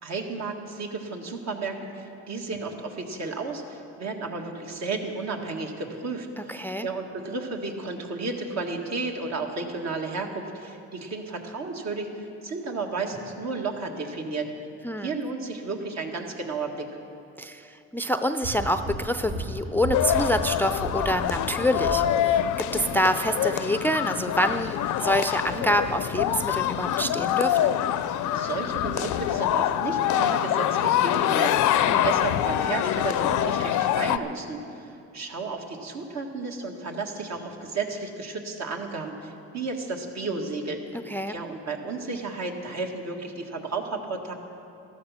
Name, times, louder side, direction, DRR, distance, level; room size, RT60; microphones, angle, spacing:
voice 1, 0.0-12.1 12.4-14.5 15.0-16.9 28.3-40.8 41.3-44.3, right 3 dB, 60° right, 2 dB, 1.9 m, -33 dB
voice 2, 6.4-6.9 14.8-15.1 17.4-27.7 31.9-32.1 41.1-41.4, equal, 5° left, 8 dB, 0.4 m, -27 dB
sound 1, 18.4-22.4 22.7-22.9, right 1 dB, 80° right, 2.0 m, -35 dB
sound 2, 19.9-34.2, left 11 dB, 75° left, 0.5 m, -25 dB
13.5 x 13.5 x 5.7 m, 2.7 s
cardioid pair, 90°, 30 cm